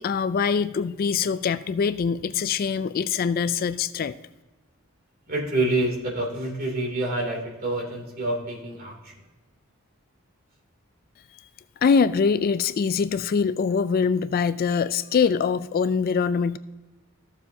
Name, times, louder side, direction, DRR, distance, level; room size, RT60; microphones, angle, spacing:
voice 1, 0.0-4.1 11.8-16.6, left 6 dB, 45° left, 14 dB, 0.3 m, -23 dB
voice 2, 5.3-9.1, right 2 dB, 45° right, 0 dB, 2.7 m, -27 dB
15.0 x 7.1 x 2.7 m, 1.1 s
head